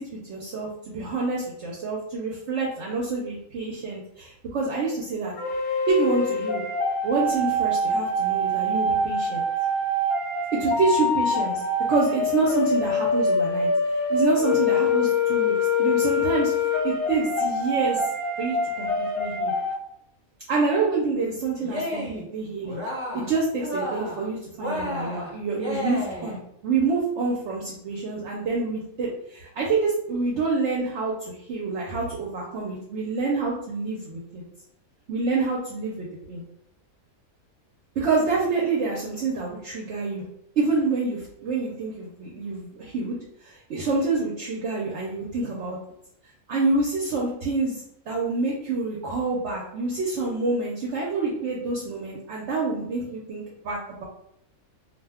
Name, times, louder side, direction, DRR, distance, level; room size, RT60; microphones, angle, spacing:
voice 1, 0.0-5.3 5.9-6.6 7.0-9.4 10.5-11.6 11.9-13.7 14.1-16.5 16.8-18.1 18.4-19.5 20.5-22.8 23.1-34.4 35.1-36.4 38.0-40.2 40.6-45.8 46.5-54.0, right 3 dB, 65° right, -3 dB, 0.8 m, -27 dB
sound 1, 5.4-19.7, left 2 dB, 60° left, 0.8 m, -24 dB
Cheering, 21.6-22.3 22.6-23.3 23.6-24.3 24.6-26.4, left 1 dB, 30° right, 0.6 m, -32 dB
2.5 x 2.1 x 3.4 m, 0.76 s
omnidirectional pair, 1.5 m